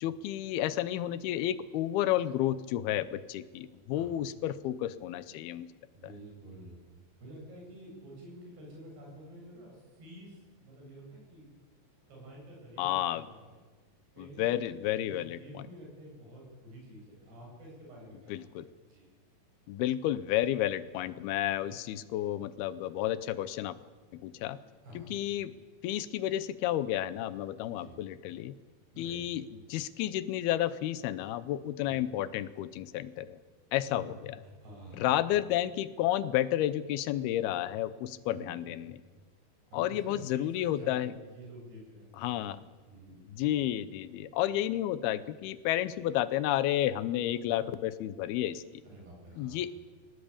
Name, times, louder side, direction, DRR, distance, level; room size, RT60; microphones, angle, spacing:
voice 1, 0.0-5.7 12.8-13.2 14.2-15.6 18.3-18.7 19.7-23.8 24.1-24.6 25.0-25.6 25.8-28.6 29.0-29.4 29.7-33.4 33.7-34.1 35.0-39.0 39.7-41.1 42.2-42.6 43.3-48.6 49.4-49.8, left 13 dB, 75° left, 15 dB, 2.6 m, -31 dB
voice 2, 5.9-6.8 7.2-11.5 12.1-13.6 14.1-19.1 21.6-21.9 24.8-25.1 27.8-28.0 28.9-29.3 31.9-32.0 33.9-35.1 38.3-38.8 39.7-43.3 47.2-47.3 48.8-49.7, right 1 dB, 75° right, -2 dB, 10.0 m, -49 dB
22.0 x 18.5 x 8.8 m, 1.4 s
omnidirectional pair, 4.7 m